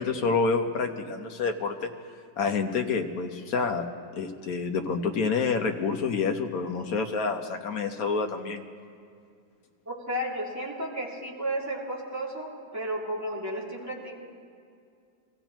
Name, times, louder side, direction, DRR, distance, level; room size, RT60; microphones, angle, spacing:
voice 1, 0.0-1.9 2.4-3.9 4.1-8.6, left 5 dB, 65° left, 4 dB, 1.4 m, -28 dB
voice 2, 9.9-14.1, right 1 dB, 10° right, -6 dB, 2.8 m, -33 dB
24.0 x 15.5 x 3.0 m, 2.3 s
omnidirectional pair, 1.7 m